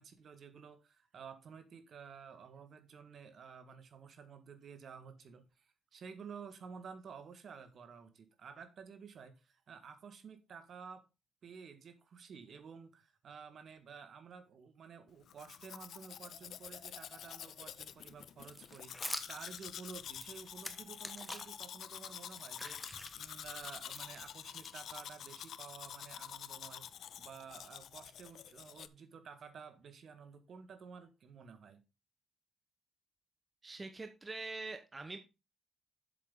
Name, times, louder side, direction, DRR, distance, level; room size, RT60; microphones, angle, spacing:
voice 1, 0.0-11.0 11.4-31.8, right 6 dB, 55° right, 1.7 m, -52 dB
Domestic sounds home sounds, 15.3-28.9, left 9 dB, 65° left, 0.5 m, -48 dB
sound 1, 18.5-21.7 22.1-25.2, left 1 dB, 5° left, 1.2 m, -47 dB
voice 2, 33.6-35.2, right 3 dB, 25° right, 1.2 m, -44 dB
7.7 x 7.6 x 3.8 m
cardioid pair, 90°, 0 cm